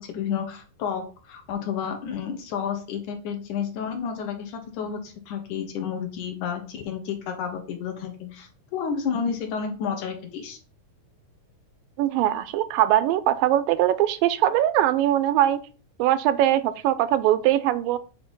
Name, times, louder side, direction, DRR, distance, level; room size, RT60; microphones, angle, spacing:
voice 1, 0.0-10.6, left 7 dB, 70° left, 2.2 m, -31 dB
voice 2, 12.0-15.6 16.0-18.0, right 12 dB, 85° right, 2.3 m, -21 dB
8.1 x 2.8 x 5.3 m
omnidirectional pair, 4.0 m